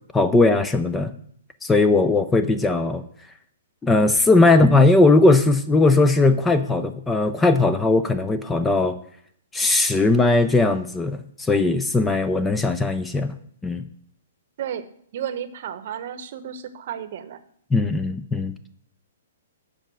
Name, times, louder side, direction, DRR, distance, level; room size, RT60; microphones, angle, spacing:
voice 1, 0.1-1.1 1.6-3.0 3.8-9.0 9.5-13.4 13.6-13.8 17.7-18.5, left 2 dB, 10° left, 10 dB, 0.5 m, -18 dB
voice 2, 15.1-17.4, right 9 dB, 55° right, 12 dB, 0.8 m, -32 dB
7.5 x 5.2 x 7.4 m, 0.65 s
hypercardioid pair, 150°, 0 cm